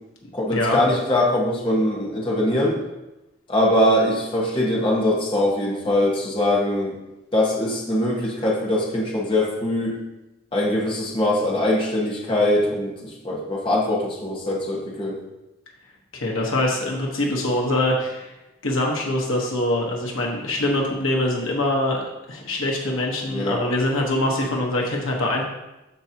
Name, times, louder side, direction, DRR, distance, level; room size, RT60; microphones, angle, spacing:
voice 1, 0.3-2.8 3.5-6.9 7.3-10.0 10.5-15.2 23.3-23.6, left 1 dB, 25° left, -4 dB, 1.5 m, -22 dB
voice 2, 16.1-18.3 18.6-25.4, left 1 dB, 85° left, -1 dB, 1.4 m, -24 dB
13.0 x 4.7 x 3.0 m, 0.97 s
head